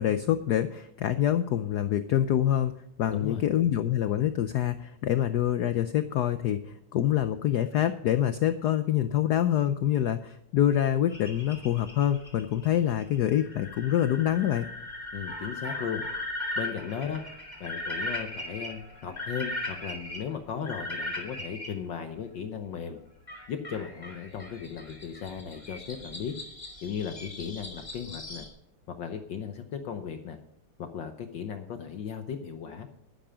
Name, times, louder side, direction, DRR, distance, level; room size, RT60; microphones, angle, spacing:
voice 1, 0.0-2.7 3.0-14.7, left 11 dB, 80° left, 11 dB, 0.9 m, -26 dB
voice 2, 3.1-3.4 15.1-16.0 16.6-17.2 17.6-23.0 23.5-26.3 26.8-28.5 28.9-30.4 30.8-32.9, left 7 dB, 60° left, 6 dB, 1.5 m, -36 dB
sound 1, 11.1-21.7 23.3-28.5, left 1 dB, 20° left, 2.7 m, -38 dB
11.0 x 10.5 x 5.0 m, 0.77 s
omnidirectional pair, 2.4 m